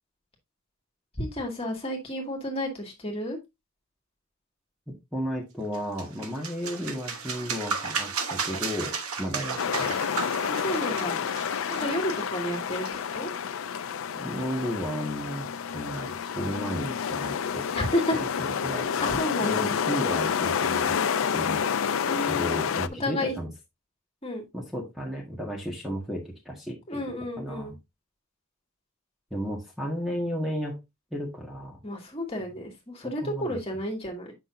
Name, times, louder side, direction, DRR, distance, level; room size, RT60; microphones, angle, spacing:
voice 1, 1.2-3.4 10.5-11.2 11.7-12.9 13.1-13.3 17.7-18.2 19.0-19.7 22.1-22.5 23.0-23.3 24.2-24.5 26.9-27.7 31.8-34.3, left 1 dB, 25° left, 1 dB, 2.1 m, -31 dB
voice 2, 5.1-10.0 14.1-15.4 15.7-17.7 18.1-18.3 18.6-21.0 21.3-21.6 22.2-23.5 24.5-27.0 27.4-27.8 29.3-30.8 31.1-31.8 32.4-32.5 33.0-33.6, equal, ahead, -2 dB, 1.6 m, -33 dB
sound 1, 5.7-13.2, right 5 dB, 90° right, 1.3 m, -34 dB
sound 2, 9.6-22.9, left 7 dB, 65° left, 0.4 m, -29 dB
7.8 x 6.0 x 2.6 m, 0.21 s
head